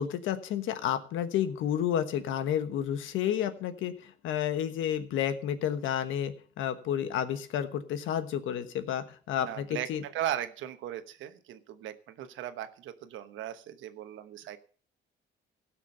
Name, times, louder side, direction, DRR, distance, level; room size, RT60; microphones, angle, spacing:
voice 1, 0.0-10.0, left 9 dB, 80° left, 10 dB, 1.3 m, -31 dB
voice 2, 9.4-14.6, right 11 dB, 75° right, 11 dB, 1.1 m, -37 dB
16.5 x 6.1 x 5.5 m, 0.43 s
cardioid pair, 125°, 20 cm